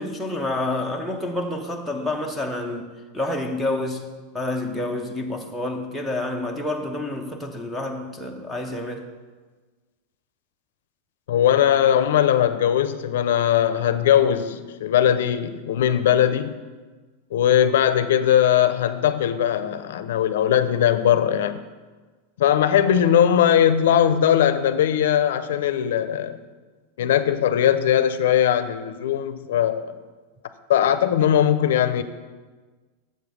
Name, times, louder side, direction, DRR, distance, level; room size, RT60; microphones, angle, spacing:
voice 1, 0.0-2.9 3.1-4.1 4.3-9.1, left 2 dB, ahead, 3 dB, 0.5 m, -28 dB
voice 2, 11.3-16.5 17.3-21.6 22.4-26.4 27.0-29.9 30.7-32.0, left 10 dB, 70° left, 12 dB, 0.5 m, -20 dB
7.5 x 5.1 x 6.3 m, 1.4 s
supercardioid pair, 180°, 0 cm